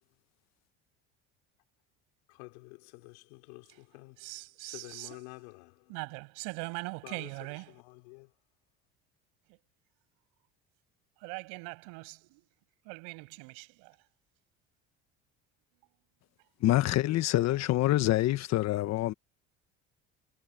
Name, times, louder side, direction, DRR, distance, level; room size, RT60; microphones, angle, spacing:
voice 1, 2.3-4.2 4.6-5.9 7.0-7.3 7.7-8.3, left 28 dB, 90° left, 4.9 m, -49 dB
voice 2, 4.2-5.2 5.9-7.8 9.5-9.6 11.2-12.5 12.8-14.0 16.6-17.0, right 35 dB, 85° right, 7.6 m, -42 dB
voice 3, 16.6-19.1, left 15 dB, 55° left, 1.4 m, -26 dB
supercardioid pair, 110°, 31 cm